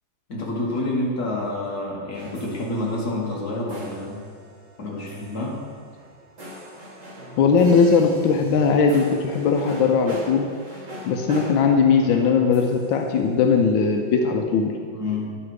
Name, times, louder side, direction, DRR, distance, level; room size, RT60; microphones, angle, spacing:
voice 1, 0.3-4.2 4.8-5.6 14.9-15.4, left 2 dB, 50° left, -4 dB, 2.1 m, -28 dB
sound 1, 2.1-14.0, equal, 55° right, 3.1 m, -42 dB
voice 2, 7.4-10.5 11.1-14.8, left 5 dB, 90° left, 3 dB, 1.4 m, -19 dB
10.0 x 5.8 x 4.8 m, 2.1 s
omnidirectional pair, 2.1 m